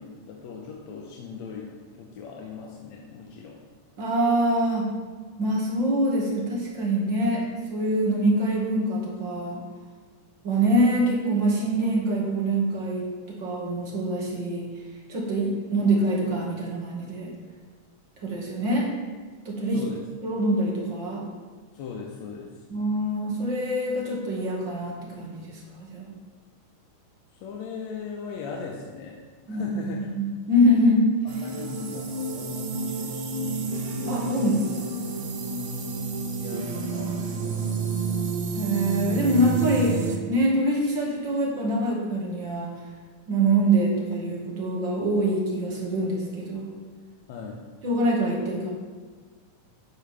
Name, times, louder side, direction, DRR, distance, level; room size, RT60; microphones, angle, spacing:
voice 1, 0.0-3.6 19.7-20.0 20.3-20.4 21.7-22.6 27.3-29.2 29.5-30.1 31.4-33.8 34.2-34.4 35.1-35.2 36.4-38.2 47.3-47.6, left 5 dB, 70° left, -1 dB, 2.0 m, -39 dB
voice 2, 4.0-4.9 5.4-7.5 7.7-9.6 10.4-14.7 15.1-17.3 18.2-18.9 19.5-19.8 20.2-21.3 22.7-26.1 29.5-31.1 34.1-34.9 38.5-42.7 43.3-46.7 47.8-48.7, right 1 dB, 40° right, -3 dB, 2.2 m, -24 dB
sound 1, 31.3-40.2, right 4 dB, 65° right, 1.3 m, -30 dB
11.0 x 10.0 x 3.5 m, 1.5 s
omnidirectional pair, 3.8 m